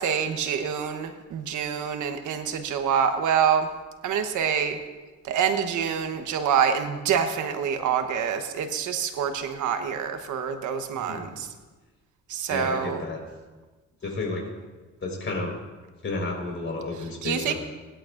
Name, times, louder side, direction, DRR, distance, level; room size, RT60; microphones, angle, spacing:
voice 1, 0.0-3.7 4.0-4.8 5.2-11.5 12.3-13.0 17.2-17.5, right 7 dB, 80° right, 7 dB, 1.2 m, -26 dB
voice 2, 10.9-11.3 12.5-13.2 14.0-14.5 15.0-15.5 16.0-17.5, left 2 dB, 40° left, 0 dB, 4.6 m, -31 dB
19.5 x 11.5 x 2.6 m, 1.3 s
cardioid pair, 90°, 30 cm